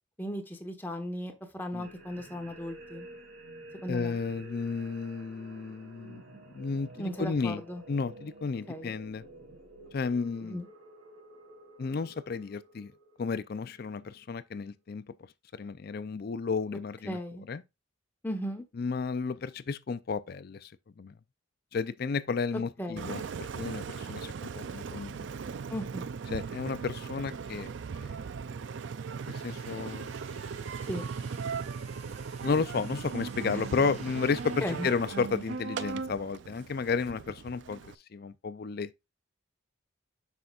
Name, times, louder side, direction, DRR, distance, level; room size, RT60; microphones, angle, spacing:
voice 1, 0.2-3.1 3.8-4.2 7.0-7.8 8.7-8.9 10.4-10.7 17.0-17.5 18.2-18.6 22.8-23.1 25.7-26.1 30.8-31.0 34.6-34.9, equal, 10° left, 1.0 m, -36 dB
sound 1, 1.8-14.5, right 2 dB, 80° right, 2.5 m, -51 dB
voice 2, 3.9-6.2 6.5-7.6 7.9-9.3 9.9-10.6 11.8-12.9 13.2-15.1 15.5-17.2 17.5-17.6 18.8-20.7 21.0-21.1 21.7-25.3 26.3-27.7 28.0-28.2 29.3-30.1 32.4-39.0, left 5 dB, 45° left, 0.4 m, -32 dB
Engine, 23.0-37.9, right 5 dB, 60° right, 0.4 m, -38 dB
sound 2, 28.9-35.3, right 2 dB, 35° right, 2.2 m, -54 dB
7.8 x 5.5 x 2.3 m
head